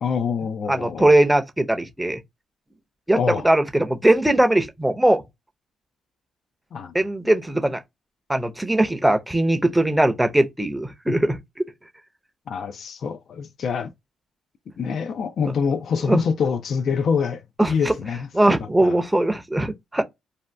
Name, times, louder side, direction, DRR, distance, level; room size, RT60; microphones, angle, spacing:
voice 1, 0.0-1.1 3.1-3.4 6.7-6.9 12.5-13.9 14.8-18.3 18.6-19.0, left 6 dB, 60° left, 0.4 m, -25 dB
voice 2, 0.7-2.2 3.1-5.2 6.9-7.8 8.3-11.7 16.0-16.2 17.6-17.9 18.3-20.0, right 1 dB, 5° right, 0.6 m, -20 dB
2.6 x 2.2 x 3.2 m
cardioid pair, 90°, 0 cm